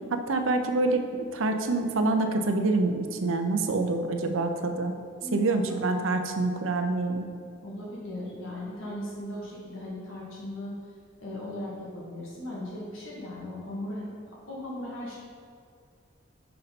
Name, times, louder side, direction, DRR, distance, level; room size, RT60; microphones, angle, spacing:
voice 1, 0.1-1.0 1.3-4.9 5.3-7.3, right 3 dB, 85° right, 6 dB, 0.6 m, -26 dB
voice 2, 5.2-5.8 7.6-10.7 11.2-15.2, left 1 dB, 90° left, -5 dB, 1.7 m, -38 dB
5.6 x 5.3 x 4.2 m, 2.2 s
head